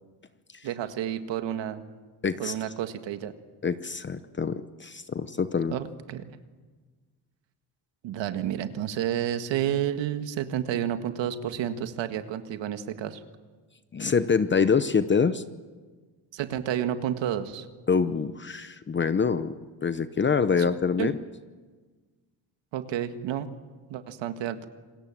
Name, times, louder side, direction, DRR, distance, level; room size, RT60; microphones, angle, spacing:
voice 1, 0.6-1.8 2.4-3.3 5.7-6.4 8.0-13.2 16.3-17.7 21.0-21.1 22.7-23.5 23.9-24.7, right 10 dB, 85° right, 8 dB, 1.8 m, -30 dB
voice 2, 2.2-2.5 3.6-5.7 13.9-15.4 17.9-21.1, left 5 dB, 25° left, 12 dB, 0.8 m, -25 dB
27.5 x 19.5 x 7.6 m, 1.4 s
cardioid pair, 125°, 43 cm